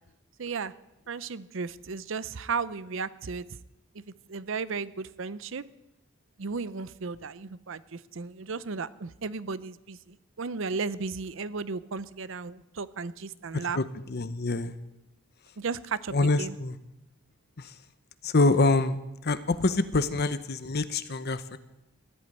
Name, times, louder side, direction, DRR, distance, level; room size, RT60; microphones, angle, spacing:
voice 1, 0.4-0.7 1.1-3.4 3.9-4.0 4.3-5.6 6.4-13.8 15.6-16.6, right 4 dB, 65° right, 17 dB, 0.6 m, -35 dB
voice 2, 13.5-14.7 16.1-16.8 17.6-17.7 18.2-19.0 19.2-21.6, left 3 dB, 50° left, 13 dB, 0.8 m, -26 dB
14.5 x 8.5 x 9.9 m, 0.93 s
head